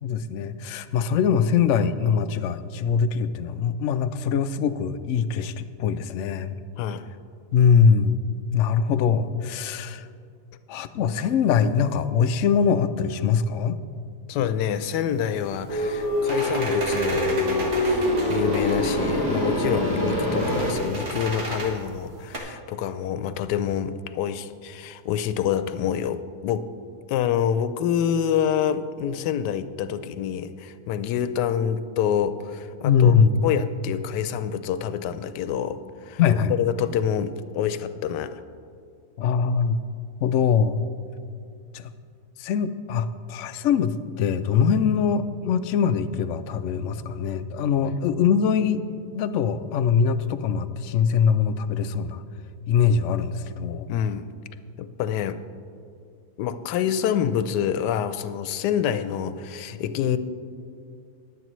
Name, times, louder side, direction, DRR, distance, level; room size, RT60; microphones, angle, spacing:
voice 1, 0.0-6.6 7.5-8.2 8.5-10.1 10.7-13.8 32.8-33.3 36.2-36.5 39.2-39.8 40.2-40.8 41.7-41.9 42.4-52.2 52.7-53.9, left 7 dB, 70° left, 10 dB, 0.7 m, -22 dB
voice 2, 14.3-26.7 27.1-33.1 33.4-36.2 36.5-38.4 53.9-54.3 54.8-55.4 56.4-60.2, left 9 dB, 90° left, 12 dB, 1.2 m, -27 dB
sound 1, 14.8-22.4, right 1 dB, 45° right, 1.6 m, -33 dB
sound 2, 15.7-20.7, left 1 dB, 15° right, 2.2 m, -24 dB
20.5 x 8.2 x 3.1 m, 2.4 s
omnidirectional pair, 1.8 m